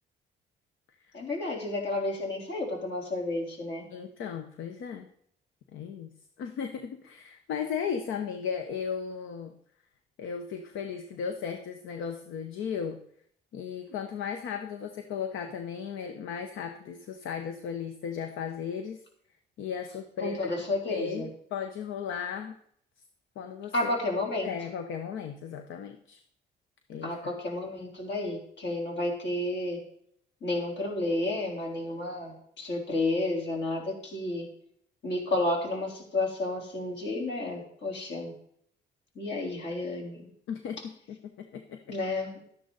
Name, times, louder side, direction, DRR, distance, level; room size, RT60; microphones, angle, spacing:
voice 1, 1.1-3.8 20.2-21.3 23.7-24.5 27.0-29.8 30.4-34.5 35.0-38.3 39.2-40.3 41.9-42.3, left 2 dB, 65° left, -1 dB, 4.0 m, -31 dB
voice 2, 3.9-5.1 5.7-6.1 6.4-9.5 10.2-13.0 13.5-19.0 19.6-20.5 20.9-22.6 23.4-23.9 24.4-26.2 26.9-27.3 40.5-41.9, left 7 dB, 80° left, 6 dB, 0.9 m, -36 dB
12.5 x 10.0 x 4.0 m, 0.66 s
cardioid pair, 90°, 20 cm